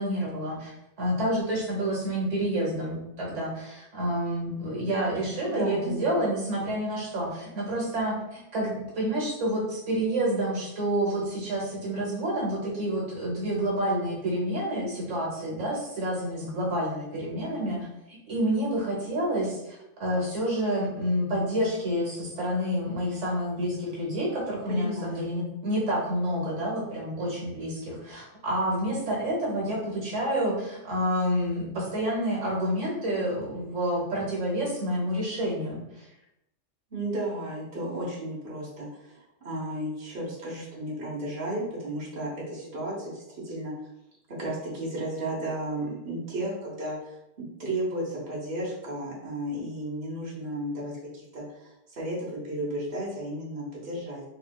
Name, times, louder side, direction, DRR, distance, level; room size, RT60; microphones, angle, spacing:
voice 1, 0.0-36.1, equal, 75° right, -4 dB, 1.3 m, -29 dB
voice 2, 5.5-6.0 24.7-25.2 36.9-43.7 44.4-54.2, right 1 dB, 45° right, -6 dB, 1.2 m, -34 dB
3.6 x 3.1 x 2.2 m, 0.87 s
omnidirectional pair, 1.2 m